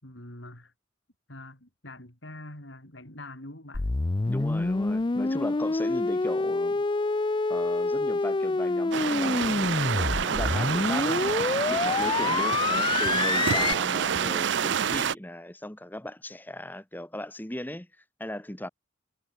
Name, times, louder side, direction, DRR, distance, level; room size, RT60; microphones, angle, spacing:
voice 1, 0.0-0.7 1.3-3.9 4.4-4.6 12.1-12.4, left 1 dB, 75° left, 6.5 m, -45 dB
sound 1, 3.7-13.7, left 3 dB, 25° left, 0.4 m, -27 dB
voice 2, 4.3-6.8 7.5-18.7, left 1 dB, 10° left, 1.4 m, -37 dB
sound 2, 8.9-15.1, right 7 dB, 65° right, 0.5 m, -28 dB
head